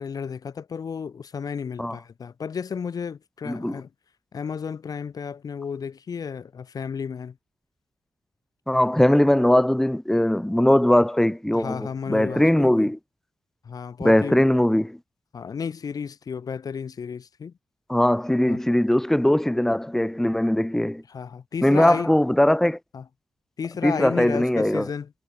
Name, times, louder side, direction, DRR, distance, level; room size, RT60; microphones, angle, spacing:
voice 1, 0.0-3.9 4.3-7.3 11.5-12.9 13.6-14.4 15.3-17.5 18.4-18.6 21.1-22.1 22.9-23.0 23.6-25.1, left 6 dB, 65° left, 1.1 m, -33 dB
voice 2, 3.5-3.8 8.7-13.0 14.0-15.0 17.9-21.0 21.6-22.8 23.8-24.9, left 1 dB, 5° left, 0.8 m, -20 dB
cardioid pair, 60°, 7 cm